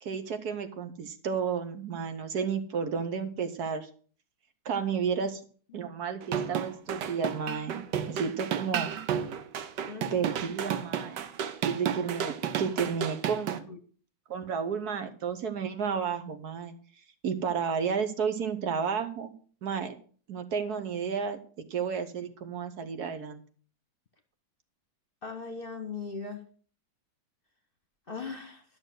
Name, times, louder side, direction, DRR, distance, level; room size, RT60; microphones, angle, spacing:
voice 1, 0.0-3.9 4.6-5.4 5.7-8.9 10.1-11.2 11.6-13.7 14.3-16.7 17.2-19.3 19.6-20.0 20.3-21.4 21.7-23.4, right 6 dB, 65° right, 8 dB, 1.5 m, -32 dB
sound 1, 6.2-13.6, right 8 dB, 90° right, 1.5 m, -32 dB
voice 2, 9.9-10.3 13.7-13.8 25.2-26.4 28.1-28.6, left 5 dB, 35° left, 6 dB, 1.2 m, -39 dB
11.5 x 6.7 x 6.3 m, 0.43 s
omnidirectional pair, 1.8 m